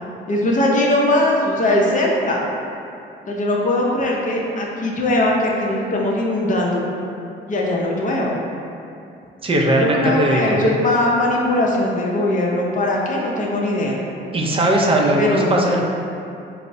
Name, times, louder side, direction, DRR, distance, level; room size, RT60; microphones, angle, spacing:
voice 1, 0.3-2.4 3.3-6.8 7.5-8.3 9.7-14.0 15.2-15.7, left 1 dB, 40° left, -2 dB, 0.6 m, -20 dB
voice 2, 9.4-10.6 14.3-15.8, right 1 dB, 30° right, -1 dB, 0.5 m, -18 dB
4.3 x 2.0 x 2.6 m, 2.6 s
cardioid pair, 90°, 20 cm